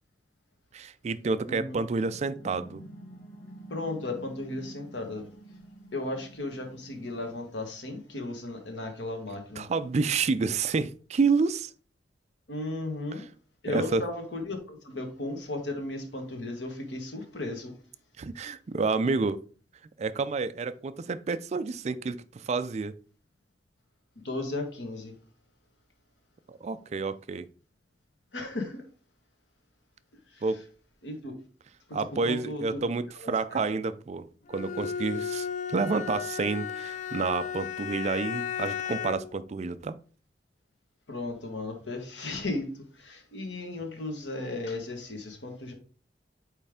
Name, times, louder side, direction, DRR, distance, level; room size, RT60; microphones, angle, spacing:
voice 1, 0.7-2.8 9.6-11.7 13.7-14.0 18.2-19.4 20.0-22.9 26.5-27.5 30.4-30.6 31.9-40.0, right 4 dB, 40° right, 0.3 m, -29 dB
voice 2, 1.5-1.8 3.7-5.3 5.9-9.7 12.5-13.2 13.6-17.8 24.2-25.2 28.3-28.8 30.3-30.4 31.0-31.3 31.9-32.0 32.2-32.8 33.1-33.6 41.1-45.7, left 2 dB, 90° left, 1.5 m, -35 dB
sound 1, 2.0-7.6, right 1 dB, 60° left, 1.5 m, -49 dB
Bowed string instrument, 34.5-39.4, left 8 dB, 45° left, 0.3 m, -34 dB
8.3 x 3.3 x 3.6 m
head